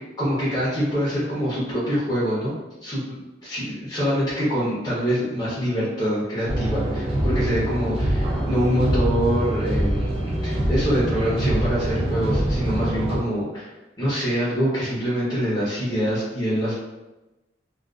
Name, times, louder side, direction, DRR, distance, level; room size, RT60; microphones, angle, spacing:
voice 1, 0.2-2.5 2.8-13.7 14.0-16.8, equal, 20° left, -9 dB, 0.6 m, -25 dB
sound 1, 6.5-13.2, right 1 dB, 35° right, 0.5 m, -24 dB
2.4 x 2.3 x 2.3 m, 1.0 s
head